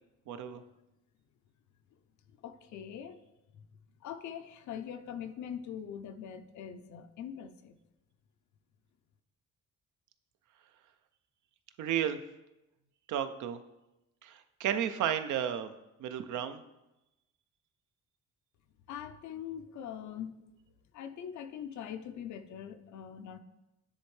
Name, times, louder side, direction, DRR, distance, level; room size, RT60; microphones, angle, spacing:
voice 1, 0.3-0.6 11.8-12.2 13.1-13.6 14.2-15.7 16.0-16.6, right 9 dB, 80° right, 9 dB, 0.6 m, -33 dB
voice 2, 2.4-3.2 4.0-7.8 18.9-20.4 20.9-23.4, left 8 dB, 70° left, 9 dB, 0.6 m, -42 dB
9.8 x 3.4 x 3.2 m, 0.95 s
cardioid pair, 90°, 30 cm